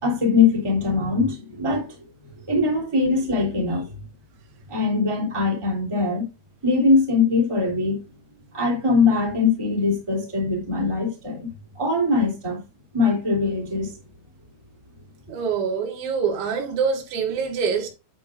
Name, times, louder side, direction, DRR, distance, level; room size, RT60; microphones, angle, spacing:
voice 1, 0.0-1.9 2.5-4.0 4.7-6.3 6.6-8.0 8.5-11.5 11.7-12.6 12.9-13.9, left 4 dB, 10° right, 2.2 m, -22 dB
voice 2, 15.3-17.9, right 6 dB, 75° right, 3.9 m, -25 dB
9.7 x 8.7 x 2.5 m
omnidirectional pair, 5.5 m